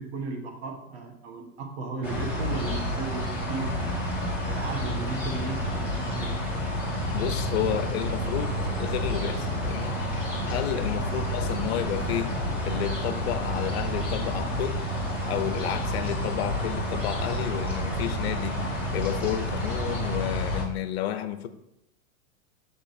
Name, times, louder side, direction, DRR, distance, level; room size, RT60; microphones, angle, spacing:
voice 1, 0.0-3.7 4.4-6.6 11.0-11.3, right 4 dB, 50° right, 3 dB, 1.2 m, -35 dB
sound 1, 2.0-20.6, equal, 5° right, 0.3 m, -29 dB
voice 2, 7.1-10.0 10.5-12.3 12.6-14.8 15.2-18.6 18.9-21.5, left 11 dB, 50° left, 10 dB, 0.7 m, -31 dB
7.1 x 3.6 x 4.2 m, 0.83 s
hypercardioid pair, 140°, 42 cm